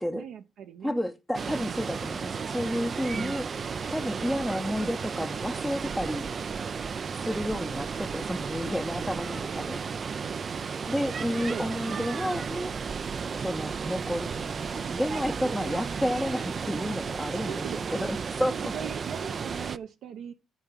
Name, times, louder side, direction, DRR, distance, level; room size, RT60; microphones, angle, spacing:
voice 1, 0.0-1.0 1.5-1.9 3.1-3.5 10.2-10.7 11.5-12.1 12.3-12.4 15.6-15.8 17.3-18.1 18.5-20.3, right 8 dB, 70° right, 0.9 m, -41 dB
voice 2, 0.8-3.5 3.9-6.3 7.1-9.8 10.9-12.7 13.3-17.6 17.9-18.7, equal, ahead, 0.7 m, -31 dB
Water, 1.3-19.8, right 6 dB, 35° right, 0.4 m, -33 dB
13.0 x 4.7 x 5.7 m
cardioid pair, 140°, 0 cm